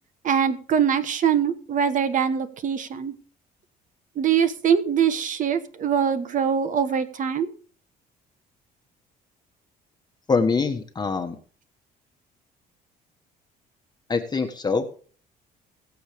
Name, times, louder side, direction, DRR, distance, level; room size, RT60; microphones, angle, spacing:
voice 1, 0.2-3.1 4.2-7.5, right 7 dB, 50° right, 11 dB, 1.2 m, -23 dB
voice 2, 10.3-11.3 14.1-15.0, left 4 dB, 25° left, 5 dB, 1.3 m, -24 dB
21.0 x 7.2 x 3.5 m, 0.41 s
cardioid pair, 110°, 17 cm